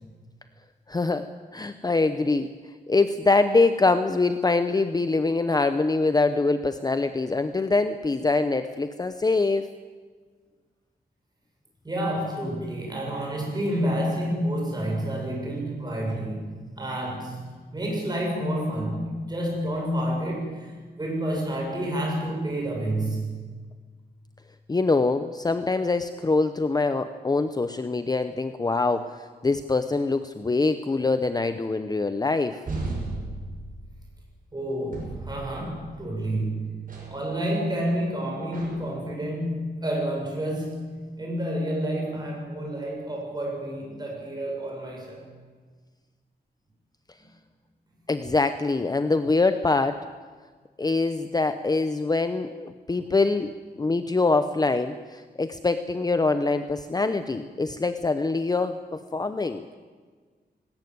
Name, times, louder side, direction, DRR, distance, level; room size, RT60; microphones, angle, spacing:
voice 1, 0.9-1.3 1.5-2.5 2.9-9.7 24.7-32.6 48.1-50.0 50.8-59.7, left 3 dB, 20° left, 9 dB, 0.7 m, -24 dB
voice 2, 11.8-17.4 17.7-20.7 21.0-23.6 34.5-45.2, right 1 dB, 25° right, -1 dB, 6.9 m, -29 dB
sound 1, 32.7-34.3 34.9-36.2 36.9-37.2 38.5-39.0, right 2 dB, 50° right, 6.1 m, -35 dB
19.5 x 18.0 x 9.4 m, 1.5 s
wide cardioid pair, 165°, 17 cm